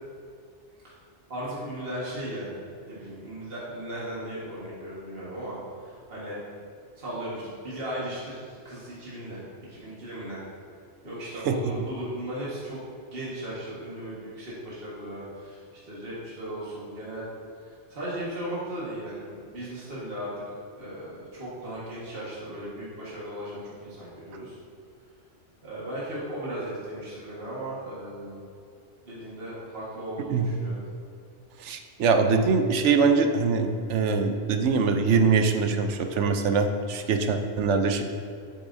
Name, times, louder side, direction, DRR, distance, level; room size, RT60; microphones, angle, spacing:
voice 1, 1.3-6.4 7.0-9.4 9.7-10.4 11.0-12.8 13.1-17.3 17.6-20.3 20.8-24.6 25.6-28.4 29.0-30.8, right 1 dB, 55° right, -8 dB, 1.9 m, -36 dB
voice 2, 31.6-38.0, right 5 dB, 85° right, 6 dB, 1.0 m, -23 dB
8.5 x 8.0 x 2.7 m, 2.3 s
omnidirectional pair, 1.2 m